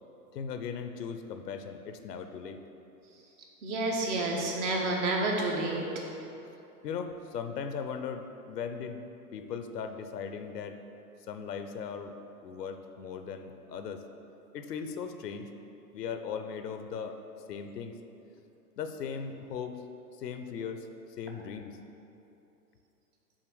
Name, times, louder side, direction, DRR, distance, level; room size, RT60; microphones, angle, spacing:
voice 1, 0.3-2.6 6.8-9.0 9.3-10.8 11.3-12.1 12.4-14.0 14.5-15.5 15.9-17.2 17.5-17.9 18.8-19.8 20.2-20.9 21.2-21.8, left 6 dB, 75° left, 7 dB, 0.7 m, -38 dB
voice 2, 3.6-5.8, right 2 dB, 45° right, -1 dB, 1.3 m, -29 dB
6.3 x 3.9 x 6.2 m, 2.9 s
hypercardioid pair, 105°, 49 cm